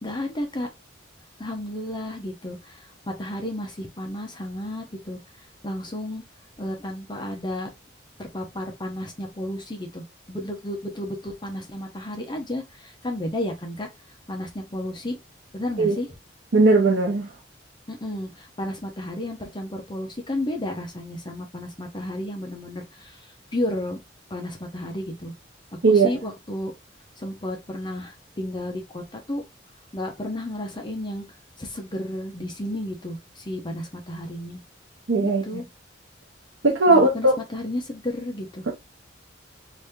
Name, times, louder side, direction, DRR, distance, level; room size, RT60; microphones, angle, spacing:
voice 1, 0.0-0.7 1.4-6.2 6.6-7.7 8.2-13.9 14.3-15.2 15.5-16.1 17.9-24.0 24.3-25.3 25.9-26.7 27.2-29.4 29.9-31.2 31.6-34.6 35.2-35.6 36.9-38.7, left 1 dB, 25° left, 0.8 m, -32 dB
voice 2, 16.5-17.3 25.8-26.1 35.1-35.6 36.6-37.4 38.7-38.8, right 3 dB, 75° right, 0.8 m, -18 dB
3.1 x 2.7 x 3.5 m
head